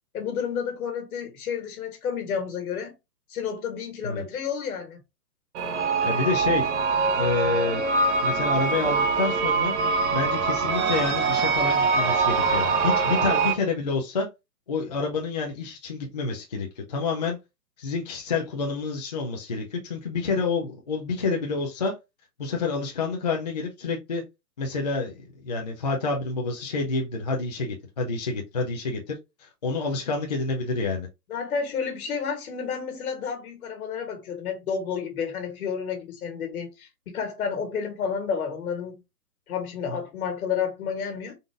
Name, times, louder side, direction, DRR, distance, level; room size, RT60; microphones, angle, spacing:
voice 1, 0.1-2.9 3.3-5.0 31.3-39.0 39.5-41.4, left 6 dB, 60° left, 1.6 m, -30 dB
sound 1, 5.5-13.5, right 4 dB, 45° right, 0.8 m, -23 dB
voice 2, 6.0-6.7 7.2-7.8 8.2-9.8 10.1-14.3 14.7-17.4 17.8-22.0 22.4-24.2 24.6-31.1, left 4 dB, 30° left, 0.4 m, -28 dB
3.9 x 2.5 x 3.4 m
hypercardioid pair, 150°, 48 cm